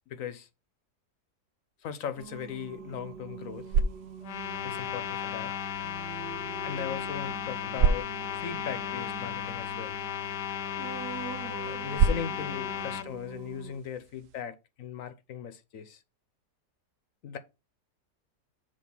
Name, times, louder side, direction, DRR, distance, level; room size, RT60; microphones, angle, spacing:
voice 1, 0.1-0.5 1.8-3.7 4.6-5.5 6.6-8.1 8.4-10.0 11.6-16.0 17.2-17.4, left 8 dB, 60° left, 1.0 m, -38 dB
Singing, 2.2-13.8, right 6 dB, 90° right, 1.7 m, -45 dB
sound 1, 3.3-14.4, right 5 dB, 70° right, 0.8 m, -33 dB
sound 2, 4.2-13.1, left 9 dB, 85° left, 1.3 m, -35 dB
7.6 x 3.5 x 5.3 m
omnidirectional pair, 1.7 m